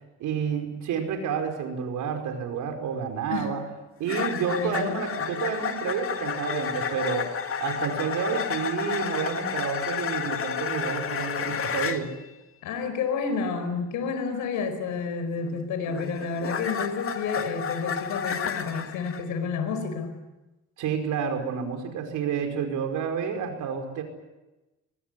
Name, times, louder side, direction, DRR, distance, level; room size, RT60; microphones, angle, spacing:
voice 1, 0.2-3.6 4.0-12.1 20.8-24.0, right 6 dB, 85° right, 5 dB, 5.1 m, -30 dB
sound 1, 4.1-12.1 15.4-19.2, left 7 dB, 45° left, 2.0 m, -31 dB
voice 2, 4.6-5.0 12.6-20.1, left 5 dB, 90° left, 9 dB, 4.8 m, -30 dB
23.5 x 20.5 x 9.8 m, 1.0 s
cardioid pair, 90°, 30 cm